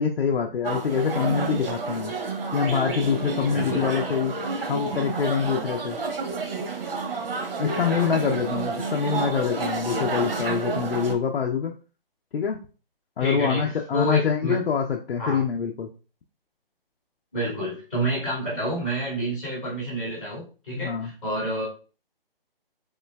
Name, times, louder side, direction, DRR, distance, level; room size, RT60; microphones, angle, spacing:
voice 1, 0.0-2.1 2.5-4.4 4.7-6.0 7.6-11.7 12.3-12.6 13.2-15.9 20.8-21.1, left 6 dB, 85° left, 1 dB, 0.6 m, -25 dB
sound 1, 0.6-11.1, right 4 dB, 70° right, 0.9 m, -30 dB
voice 2, 3.5-3.9 7.9-8.2 13.2-14.6 15.2-15.4 17.3-21.6, right 1 dB, ahead, -16 dB, 0.5 m, -29 dB
3.7 x 3.2 x 2.2 m, 0.35 s
hypercardioid pair, 160°, 29 cm